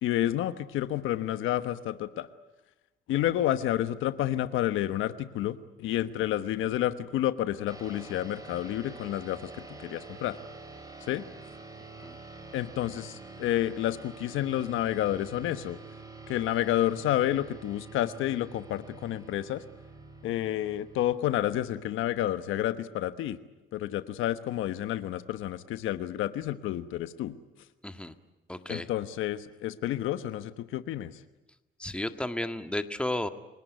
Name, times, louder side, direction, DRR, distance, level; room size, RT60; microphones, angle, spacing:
voice 1, 0.0-2.3 3.1-10.4 11.0-11.2 12.5-15.8 16.3-19.6 20.2-23.4 23.7-27.4 28.7-31.2, left 13 dB, 90° left, 12 dB, 1.2 m, -30 dB
sound 1, 7.7-22.5, right 3 dB, 20° right, 5.4 m, -47 dB
voice 2, 27.8-28.1 28.5-28.9 31.8-33.3, left 1 dB, 5° left, 8 dB, 1.8 m, -33 dB
29.5 x 18.5 x 9.4 m, 1.1 s
cardioid pair, 90°, 20 cm